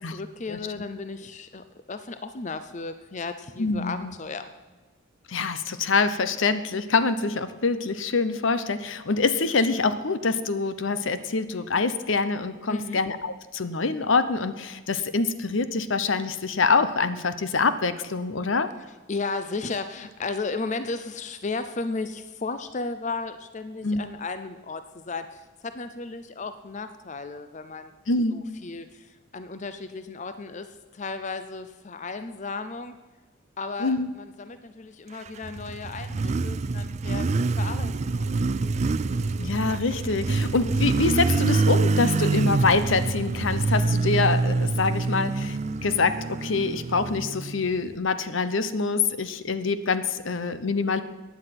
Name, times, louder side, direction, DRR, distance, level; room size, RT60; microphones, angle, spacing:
voice 1, 0.0-4.5 12.7-13.0 19.1-27.9 28.3-33.0 33.6-38.3, left 3 dB, 35° left, 10 dB, 0.6 m, -34 dB
voice 2, 3.6-4.1 5.3-18.7 23.8-24.1 28.1-28.5 33.8-34.1 39.4-51.0, left 4 dB, 70° left, 12 dB, 0.8 m, -25 dB
Motorcycle, 35.3-47.9, right 3 dB, 35° right, 0.3 m, -26 dB
sound 1, 37.1-44.9, left 1 dB, 85° left, 3.2 m, -48 dB
15.5 x 9.7 x 5.9 m, 1.3 s
head